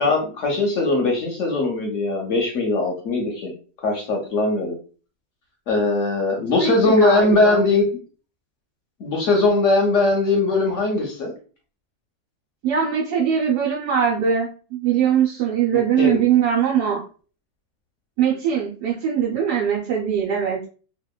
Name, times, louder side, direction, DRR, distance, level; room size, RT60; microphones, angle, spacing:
voice 1, 0.0-3.5 3.8-4.8 5.7-7.8 9.0-11.3 16.0-16.1, left 3 dB, 65° left, 1 dB, 0.8 m, -20 dB
voice 2, 6.6-7.6 12.6-17.0 18.2-20.7, right 8 dB, 80° right, -4 dB, 1.1 m, -21 dB
2.8 x 2.1 x 2.2 m, 0.39 s
omnidirectional pair, 1.6 m